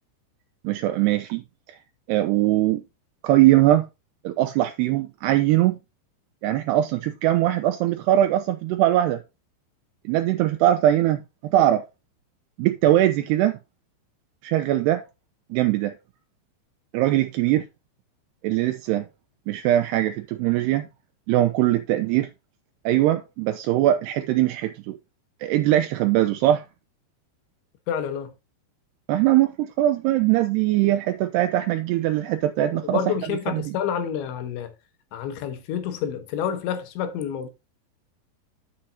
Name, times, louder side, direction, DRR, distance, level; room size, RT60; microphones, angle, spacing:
voice 1, 0.6-1.4 2.1-2.8 3.2-3.8 4.2-5.8 6.4-9.2 10.1-11.8 12.6-13.6 14.4-15.0 15.5-15.9 16.9-17.6 18.4-19.1 19.5-20.9 21.3-22.3 22.9-25.0 25.4-26.6 29.1-33.0 33.5-33.7, right 13 dB, 80° right, 2.4 m, -21 dB
voice 2, 27.9-28.3 32.6-34.7 35.1-37.5, left 8 dB, 75° left, 3.7 m, -29 dB
10.0 x 7.6 x 2.8 m
omnidirectional pair, 5.4 m